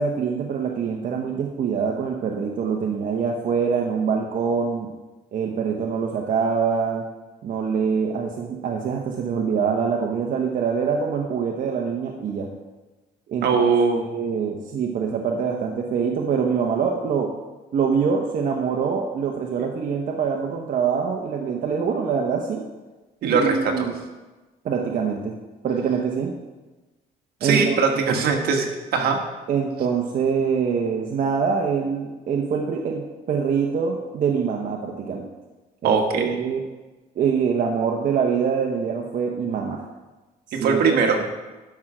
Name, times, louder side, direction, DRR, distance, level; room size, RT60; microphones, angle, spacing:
voice 1, 0.0-4.9 5.3-7.0 7.4-12.5 13.3-13.6 14.1-17.3 17.7-22.6 23.2-23.9 24.6-25.3 25.6-26.3 27.4-27.8 28.0-28.2 29.5-35.2 35.8-36.6 37.2-39.8 40.6-40.8, right 6 dB, 50° right, 1 dB, 1.0 m, -24 dB
voice 2, 13.4-14.0 23.2-23.9 27.4-29.2 35.8-36.4 40.5-41.2, right 5 dB, 70° right, 3 dB, 1.5 m, -21 dB
12.0 x 6.0 x 5.0 m, 1.2 s
cardioid pair, 110°, 17 cm